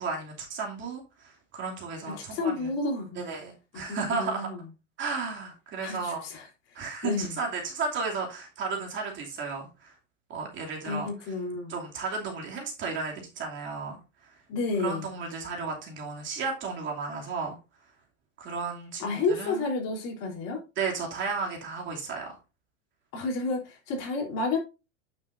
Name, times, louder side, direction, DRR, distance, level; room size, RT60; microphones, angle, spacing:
voice 1, 0.0-2.7 3.1-4.5 5.0-6.2 6.7-10.0 10.3-11.1 11.7-14.4 14.8-17.6 18.4-19.6 20.8-22.4, right 4 dB, 30° right, 2.7 m, -34 dB
voice 2, 2.2-3.2 3.7-4.6 5.8-7.4 10.8-11.7 14.5-15.1 19.0-20.6 23.1-24.6, left 3 dB, 45° left, 3.5 m, -31 dB
9.4 x 7.2 x 2.6 m
supercardioid pair, 145°, 36 cm